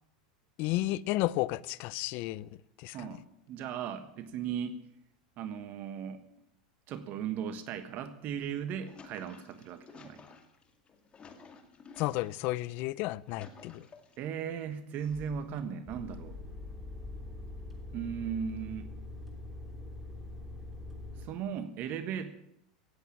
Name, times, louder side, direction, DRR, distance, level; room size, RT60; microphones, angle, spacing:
voice 1, 0.6-2.5 2.8-3.2 12.0-13.9, left 18 dB, 55° left, 0.6 m, -32 dB
voice 2, 2.9-4.8 5.4-6.2 6.9-10.2 14.2-16.4 17.9-18.9 21.2-22.3, right 8 dB, 45° right, 1.3 m, -37 dB
sound 1, 8.6-12.6 13.0-14.3 14.9-15.7, left 4 dB, 25° left, 2.3 m, -53 dB
sound 2, 15.9-21.3, left 2 dB, ahead, 3.4 m, -43 dB
17.0 x 8.3 x 8.6 m
hypercardioid pair, 105°, 4 cm